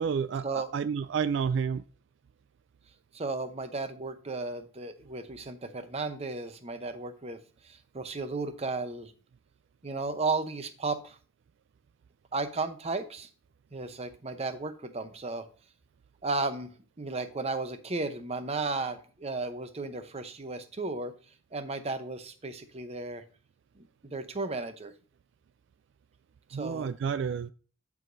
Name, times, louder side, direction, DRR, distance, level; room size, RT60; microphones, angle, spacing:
voice 1, 0.0-1.8 26.5-27.5, right 6 dB, 65° right, 14 dB, 0.3 m, -30 dB
voice 2, 3.1-7.4 7.6-9.1 9.8-11.2 12.3-13.3 13.7-15.5 16.2-16.7 17.0-21.1 21.5-23.2 23.8-24.9 26.5-26.9, right 3 dB, 30° right, 9 dB, 0.8 m, -34 dB
13.0 x 4.9 x 2.6 m, 0.39 s
head